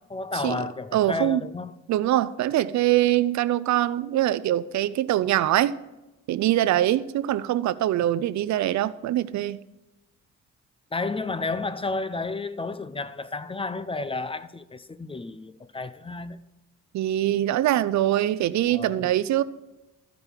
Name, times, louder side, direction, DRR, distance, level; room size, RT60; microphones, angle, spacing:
voice 1, 0.0-1.8 10.9-16.4 18.7-19.1, left 3 dB, 20° left, 0.5 m, -32 dB
voice 2, 0.9-1.4 1.9-5.7 6.3-9.6 16.9-19.4, right 13 dB, 70° right, 0.5 m, -23 dB
14.0 x 5.2 x 4.4 m
cardioid pair, 90°, 30 cm